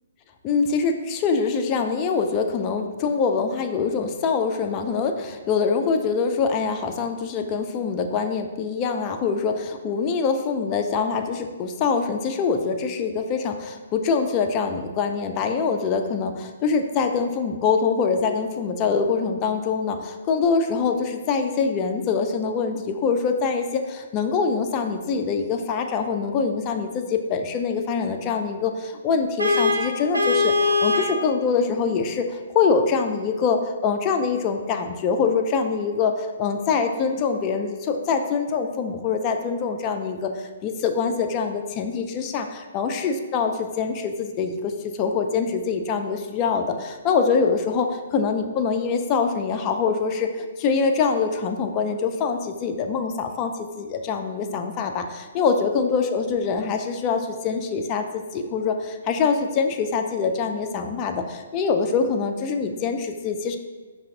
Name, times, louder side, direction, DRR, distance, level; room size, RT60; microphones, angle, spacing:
voice 1, 0.4-63.6, left 5 dB, 25° left, 5 dB, 0.3 m, -24 dB
Vehicle horn car horn honking, 29.4-31.2, left 3 dB, 80° right, 0.5 m, -21 dB
5.0 x 2.6 x 2.7 m, 1.3 s
figure-of-eight pair, 125°, 0 cm